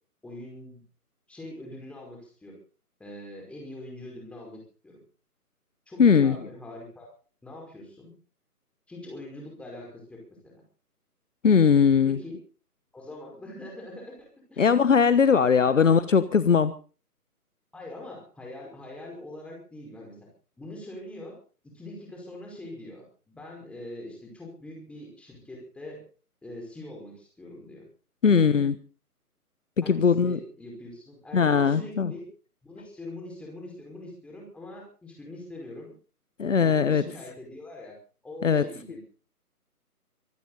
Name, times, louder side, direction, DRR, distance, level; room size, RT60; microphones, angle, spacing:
voice 1, 0.2-0.8 1.3-2.6 3.0-5.0 5.9-7.1 7.4-8.1 8.9-10.6 12.1-12.4 12.9-14.6 15.6-16.0 17.7-20.3 20.6-21.4 21.6-26.0 26.4-27.8 29.8-32.3 32.6-35.9 36.5-38.0 38.2-39.0, left 1 dB, 5° left, -1 dB, 5.1 m, -43 dB
voice 2, 6.0-6.4 11.4-12.2 14.6-16.7 28.2-28.7 29.8-30.4 31.3-32.1 36.4-37.0 38.4-38.7, left 6 dB, 50° left, 14 dB, 1.3 m, -20 dB
25.0 x 12.5 x 4.1 m, 0.38 s
figure-of-eight pair, 150°, 46 cm